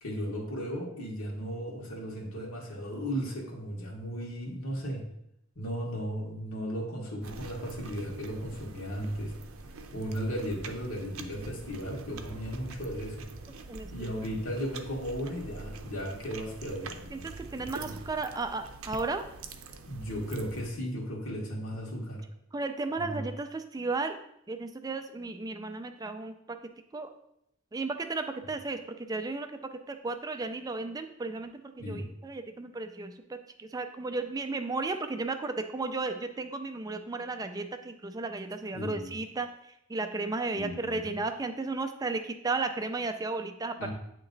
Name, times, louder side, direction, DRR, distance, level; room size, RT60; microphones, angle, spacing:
voice 1, 0.0-5.0 5.5-9.3 9.9-13.3 13.9-17.3 17.8-18.0 19.9-22.2 23.1-23.2 31.8-32.0 38.7-39.1 40.6-41.0 43.8-43.9, equal, 80° left, -1 dB, 1.5 m, -35 dB
sound 1, 7.2-20.7, right 3 dB, 90° right, 0.6 m, -45 dB
voice 2, 13.7-14.2 17.1-19.2 22.5-24.2 24.5-26.6 26.9-27.1 27.7-29.6 29.9-39.5 39.9-43.9, right 3 dB, 20° right, 7 dB, 0.4 m, -34 dB
8.3 x 3.0 x 3.9 m, 0.78 s
head